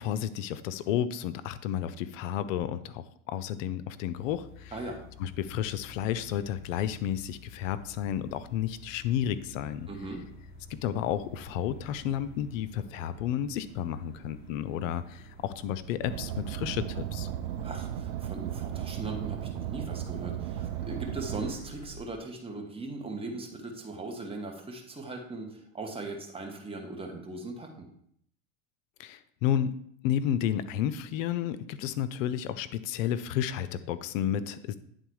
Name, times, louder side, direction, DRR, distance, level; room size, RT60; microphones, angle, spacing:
voice 1, 0.0-4.8 5.2-9.9 10.7-17.3 29.0-34.8, left 10 dB, 75° left, 14 dB, 0.6 m, -32 dB
sound 1, 4.1-22.0, equal, 25° left, 1.6 m, -50 dB
voice 2, 4.7-5.0 9.9-10.2 17.6-27.9, right 2 dB, 15° right, 2 dB, 1.5 m, -39 dB
Car, 16.0-21.5, right 11 dB, 80° right, 0.6 m, -35 dB
9.9 x 3.8 x 4.7 m, 0.68 s
supercardioid pair, 120°, 39 cm